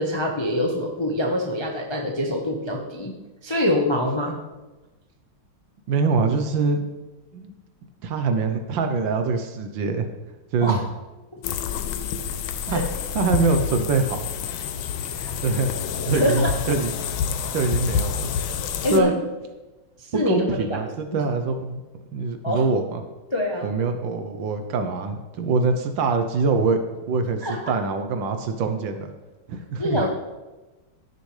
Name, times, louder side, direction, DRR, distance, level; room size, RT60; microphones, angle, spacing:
voice 1, 0.0-3.1 3.4-4.4 10.6-10.8 12.7-12.8 15.2-15.3 16.1-16.5 18.8-19.1 20.0-20.8 22.4-22.6 23.3-23.7 27.4-27.6 29.8-30.1, left 1 dB, 30° left, 0 dB, 0.5 m, -24 dB
voice 2, 5.9-6.8 7.3-7.5 8.0-10.1 10.5-10.8 12.7-12.9 13.1-14.2 15.4-15.7 16.0-16.9 17.5-18.1 18.9-19.1 20.1-21.8 22.1-23.0 23.6-26.8 27.1-29.1 29.5-30.0, right 4 dB, 70° right, 7 dB, 1.4 m, -24 dB
sound 1, 11.4-19.0, left 7 dB, 75° left, 1.5 m, -28 dB
15.5 x 6.8 x 3.3 m, 1.1 s
omnidirectional pair, 2.4 m